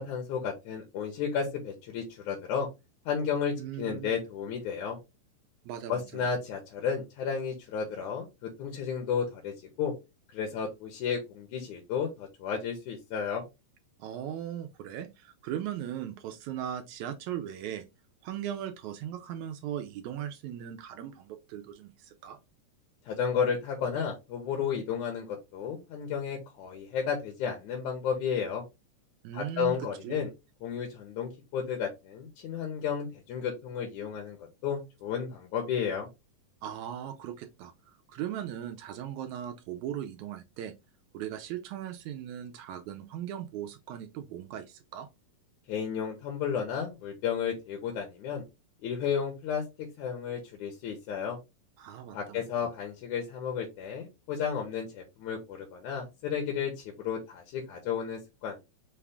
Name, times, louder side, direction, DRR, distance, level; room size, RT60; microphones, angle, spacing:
voice 1, 0.0-2.7 3.1-5.0 5.9-9.9 10.3-13.5 23.1-28.6 29.3-30.3 30.6-34.4 34.6-36.1 45.7-48.4 48.8-51.4 52.1-58.6, left 7 dB, 75° left, 2.2 m, -33 dB
voice 2, 3.6-4.2 5.7-6.2 14.0-17.9 18.2-22.4 29.2-29.8 30.0-30.2 36.6-40.7 41.1-45.1 51.8-52.7, right 10 dB, 80° right, 1.9 m, -38 dB
5.5 x 2.4 x 3.4 m
omnidirectional pair, 3.5 m